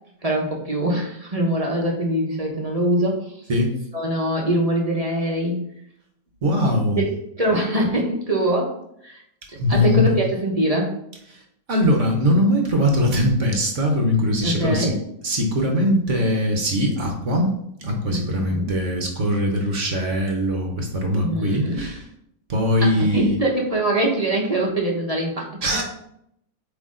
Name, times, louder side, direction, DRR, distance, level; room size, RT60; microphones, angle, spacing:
voice 1, 0.2-3.2 3.9-5.6 7.0-7.1 7.4-8.7 9.0-9.2 9.7-10.9 14.4-14.9 18.1-18.7 21.1-21.8 22.8-25.4, right 1 dB, 25° right, -1 dB, 0.9 m, -23 dB
voice 2, 6.4-7.0 9.5-10.2 11.3-11.4 11.7-14.9 15.2-17.5 17.8-22.0 22.5-23.4 25.6-25.8, left 1 dB, 50° right, 2 dB, 1.1 m, -21 dB
8.1 x 3.2 x 3.7 m, 0.74 s
omnidirectional pair, 2.0 m